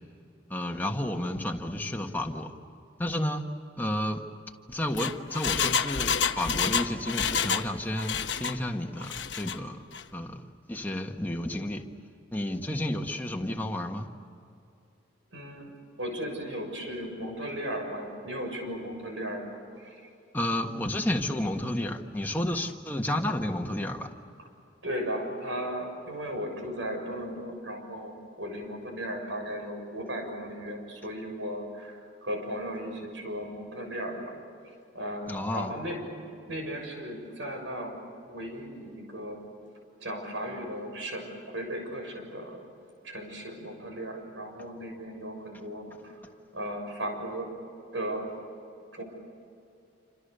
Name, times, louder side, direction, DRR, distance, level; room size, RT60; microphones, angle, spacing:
voice 1, 0.5-2.5 3.0-3.4 3.8-4.2 4.7-9.8 10.1-10.4 10.7-11.8 12.3-14.1 20.3-24.1 35.3-35.7, left 1 dB, 10° left, 2 dB, 1.6 m, -31 dB
Engine, 4.7-7.7 8.0-8.6 9.0-9.6 9.9-10.0, left 6 dB, 70° left, 1.1 m, -28 dB
voice 2, 15.3-15.7 16.0-20.1 24.4-24.5 24.8-34.4 34.9-39.5 40.0-42.6 43.0-47.5 47.9-48.4 48.9-49.0, equal, 80° right, 3 dB, 6.9 m, -36 dB
28.0 x 27.0 x 6.9 m, 2.6 s
head